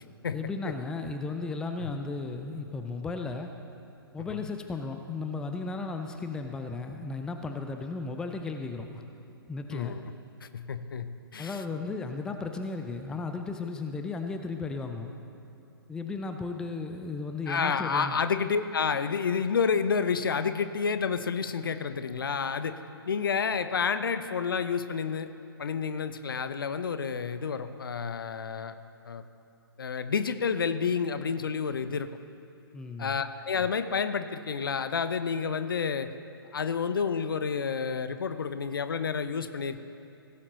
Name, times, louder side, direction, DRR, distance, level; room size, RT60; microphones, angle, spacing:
voice 1, 0.3-3.5 4.1-9.0 9.5-10.0 11.4-15.1 15.9-18.2 32.7-33.2, left 3 dB, 5° left, 5 dB, 0.4 m, -35 dB
voice 2, 9.7-10.1 10.4-11.6 17.5-22.8 23.1-25.3 25.6-28.7 29.1-29.2 29.8-32.1 33.0-36.1 36.5-39.8, left 6 dB, 65° left, 11 dB, 0.6 m, -29 dB
17.0 x 7.4 x 3.9 m, 2.7 s
figure-of-eight pair, 120°, 13 cm